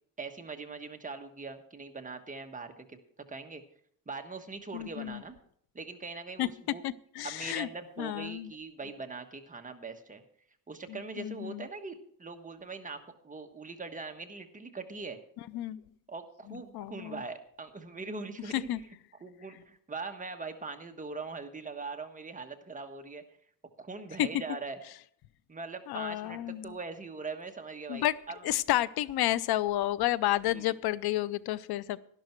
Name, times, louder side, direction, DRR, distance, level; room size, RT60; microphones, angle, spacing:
voice 1, 0.2-3.0 3.3-3.6 4.1-5.4 5.7-6.8 7.2-10.2 10.7-15.2 16.1-18.7 19.2-23.2 23.8-24.8 25.5-28.5 30.5-30.6, right 4 dB, 20° right, 5 dB, 1.3 m, -41 dB
voice 2, 4.7-5.2 6.4-6.5 6.8-7.7 8.0-8.5 10.9-11.7 15.5-15.8 16.5-17.2 18.5-18.8 24.2-24.3 25.9-26.7 27.9-28.1 28.4-32.0, left 14 dB, 85° left, 19 dB, 0.6 m, -31 dB
12.0 x 11.5 x 4.5 m, 0.64 s
cardioid pair, 115°, 37 cm